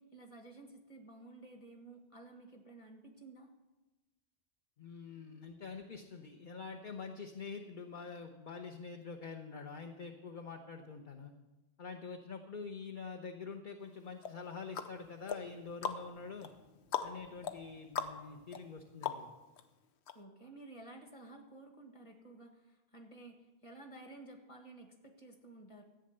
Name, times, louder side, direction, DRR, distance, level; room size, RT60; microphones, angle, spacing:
voice 1, 0.0-3.5 20.1-25.8, right 2 dB, 30° left, 3 dB, 1.7 m, -53 dB
voice 2, 4.8-11.3 11.8-16.5 17.0-19.3, left 5 dB, 50° left, 3 dB, 1.0 m, -46 dB
sound 1, 14.2-19.6 20.1-20.2, left 7 dB, 80° left, 1.1 m, -41 dB
14.0 x 8.8 x 6.7 m, 1.1 s
omnidirectional pair, 1.1 m